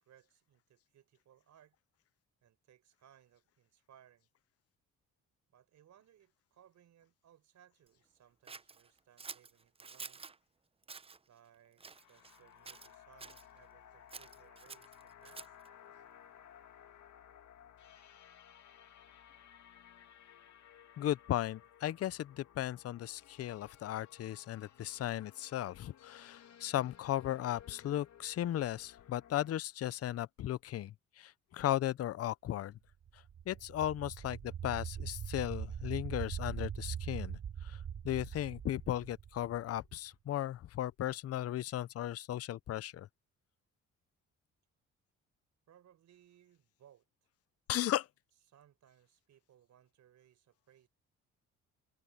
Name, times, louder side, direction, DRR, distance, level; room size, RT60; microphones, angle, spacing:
voice 1, 0.0-1.8 2.4-4.3 5.5-10.2 11.3-15.5 45.7-47.0 48.5-50.9, right 10 dB, 65° right, 4.6 m, -65 dB
Scissors, 8.5-10.4 10.8-11.2 11.8-12.4 12.6-13.4 14.1-15.7, right 4 dB, 20° right, 0.6 m, -49 dB
sound 1, 11.8-29.6, left 9 dB, 70° left, 2.5 m, -58 dB
voice 2, 21.0-32.8 33.5-37.8 38.0-43.1 47.7-48.1, left 12 dB, 50° left, 0.6 m, -36 dB
sound 2, 33.1-39.9, right 8 dB, 40° right, 1.1 m, -42 dB
cardioid pair, 90°, 30 cm